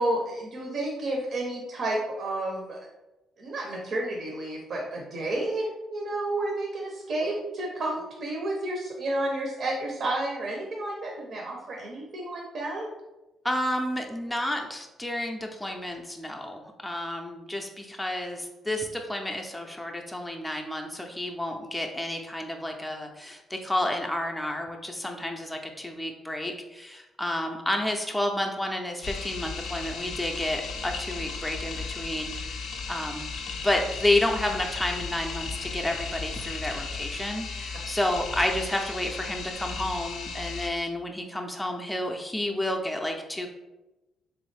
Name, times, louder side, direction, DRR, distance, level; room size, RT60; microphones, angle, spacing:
voice 1, 0.0-2.8 3.4-12.9, right 1 dB, 60° right, 0 dB, 0.7 m, -31 dB
voice 2, 13.4-43.5, left 1 dB, 5° left, 2 dB, 0.4 m, -30 dB
sound 1, 29.0-40.7, left 4 dB, 75° left, 0.5 m, -35 dB
3.4 x 3.1 x 3.2 m, 1.0 s
cardioid pair, 90°, 0 cm